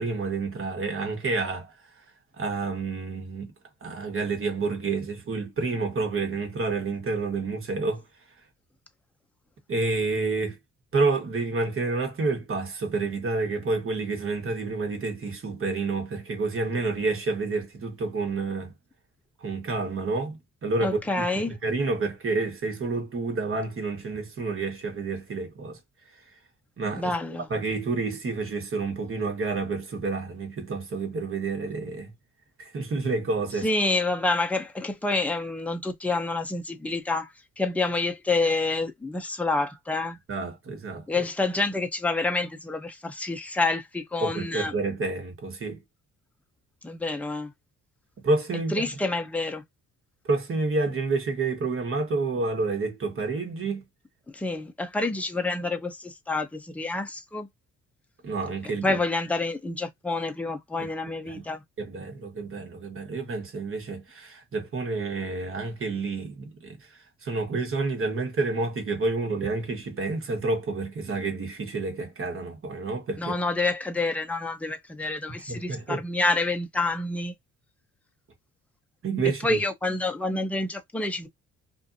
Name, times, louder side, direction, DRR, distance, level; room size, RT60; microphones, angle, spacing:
voice 1, 0.0-1.7 2.4-3.5 3.8-8.0 9.7-10.6 10.9-18.7 19.4-25.8 26.8-27.1 27.5-32.1 32.6-33.7 40.3-41.2 44.2-45.8 48.2-48.9 50.3-53.8 58.2-59.0 60.8-60.9 61.2-61.5 61.8-66.8 67.2-73.3 75.5-76.0 79.0-79.6 80.3-80.4, right 3 dB, 45° right, 1.3 m, -29 dB
voice 2, 20.8-21.6 27.0-27.5 33.6-37.3 37.6-40.2 41.1-44.7 46.8-47.5 48.7-49.6 54.3-57.5 58.6-61.6 73.2-77.3 79.4-81.3, left 3 dB, 5° left, 0.6 m, -28 dB
2.6 x 2.5 x 2.6 m
cardioid pair, 90°, 30 cm